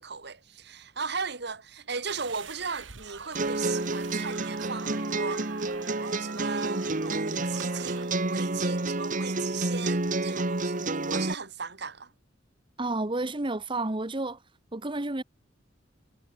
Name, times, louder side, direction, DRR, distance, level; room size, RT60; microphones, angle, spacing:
voice 1, 0.0-5.5 6.0-12.1, right 5 dB, 60° right, 2.4 m, -37 dB
sound 1, 2.1-8.0, right 5 dB, 80° right, 1.8 m, -44 dB
sound 2, 3.4-11.3, right 2 dB, 45° right, 1.5 m, -29 dB
voice 2, 12.8-14.4 14.7-15.2, right 2 dB, 25° right, 1.2 m, -30 dB
head